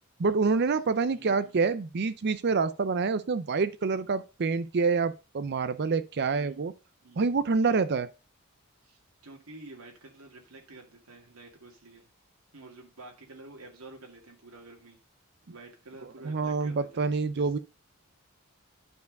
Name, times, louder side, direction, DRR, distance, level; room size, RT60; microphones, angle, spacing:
voice 1, 0.2-6.7 7.2-8.1 16.2-17.6, right 4 dB, 50° right, 0.5 m, -27 dB
voice 2, 1.1-1.5 6.3-6.6 7.0-7.9 8.8-12.1 12.5-15.0 15.5-17.1 17.3-17.6, right 2 dB, 90° right, 2.2 m, -50 dB
9.5 x 4.6 x 5.2 m
head